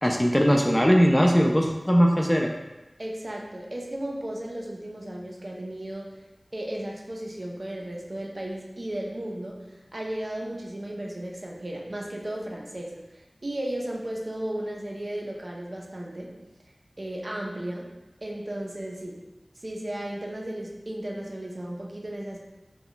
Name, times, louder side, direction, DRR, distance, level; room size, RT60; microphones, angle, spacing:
voice 1, 0.0-2.5, equal, 15° left, 1 dB, 0.3 m, -20 dB
voice 2, 3.0-6.2 6.5-16.5 17.0-17.9 18.2-19.2 19.6-22.5, right 1 dB, 55° right, -1 dB, 0.4 m, -35 dB
2.2 x 2.0 x 3.7 m, 1.0 s
wide cardioid pair, 45°, 0 cm